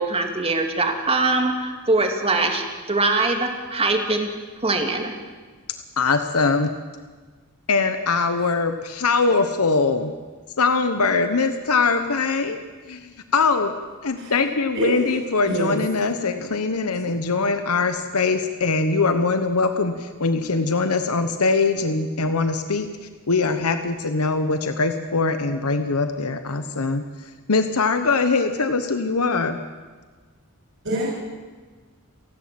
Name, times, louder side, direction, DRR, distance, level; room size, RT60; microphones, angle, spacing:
voice 1, 0.0-4.3 4.6-5.1, right 3 dB, 25° right, 4 dB, 2.4 m, -22 dB
voice 2, 6.0-6.7 7.7-10.1 10.6-12.6 12.9-13.7 14.0-29.6, left 4 dB, 85° left, 8 dB, 1.1 m, -22 dB
voice 3, 14.2-14.3 14.7-15.0 15.5-15.8 30.8-31.1, right 1 dB, 60° right, -4 dB, 5.9 m, -25 dB
29.5 x 11.5 x 7.7 m, 1.4 s
head